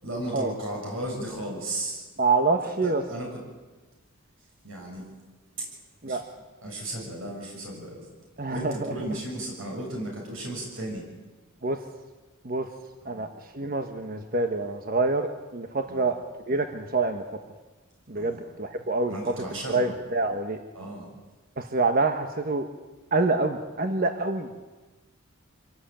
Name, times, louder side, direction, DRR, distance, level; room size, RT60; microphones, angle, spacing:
voice 1, 0.0-2.0 2.8-3.4 4.6-5.1 5.6-5.7 6.0-6.2 6.6-8.1 8.5-11.1 13.0-13.3 15.9-16.1 18.2-18.4 19.1-19.8 20.8-21.1, right 1 dB, 65° right, -1 dB, 7.1 m, -35 dB
voice 2, 2.2-3.0 6.0-6.2 8.4-8.9 11.6-11.8 12.4-12.7 13.0-13.3 13.5-16.2 16.5-17.2 18.1-19.2 19.7-20.6 21.6-22.7 23.1-24.5, right 3 dB, 45° right, 6 dB, 1.3 m, -26 dB
25.5 x 17.5 x 8.9 m, 1.2 s
head